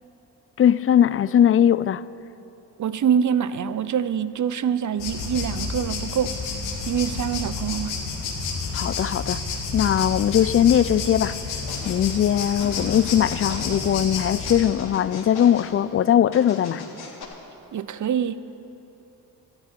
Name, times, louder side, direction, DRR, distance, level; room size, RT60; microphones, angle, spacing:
voice 1, 0.6-2.0 8.7-9.4 9.7-11.4 11.9-16.8, left 10 dB, 30° left, 0.4 m, -20 dB
voice 2, 2.8-6.3 6.9-7.9 17.7-18.4, right 8 dB, 40° right, 0.8 m, -25 dB
sound 1, 5.0-14.5, left 4 dB, 80° left, 2.4 m, -30 dB
sound 2, 11.7-12.0 12.6-13.9 14.5-15.7 16.3-17.2, left 4 dB, 55° left, 2.9 m, -38 dB
19.5 x 13.5 x 4.5 m
hypercardioid pair, 45°, 45 cm